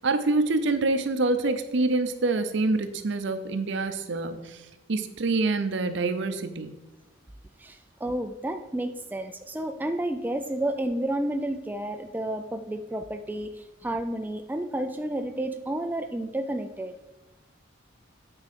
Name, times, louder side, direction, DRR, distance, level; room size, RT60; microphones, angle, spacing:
voice 1, 0.0-4.6 4.9-6.7, right 3 dB, 65° right, 10 dB, 0.6 m, -26 dB
voice 2, 7.6-16.9, right 1 dB, 10° right, 7 dB, 0.3 m, -31 dB
8.9 x 4.8 x 4.2 m, 1.0 s
head